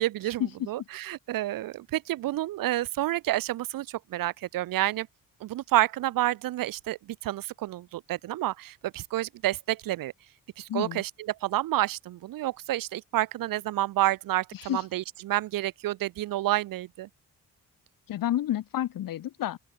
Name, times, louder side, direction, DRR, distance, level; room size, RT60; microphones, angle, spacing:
voice 1, 0.0-5.1 5.4-10.1 10.6-17.1, right 15 dB, 70° right, 0.8 m, -29 dB
voice 2, 10.7-11.0 14.5-14.8 18.1-19.6, left 12 dB, 70° left, 2.0 m, -30 dB
open air
cardioid pair, 80°, 35 cm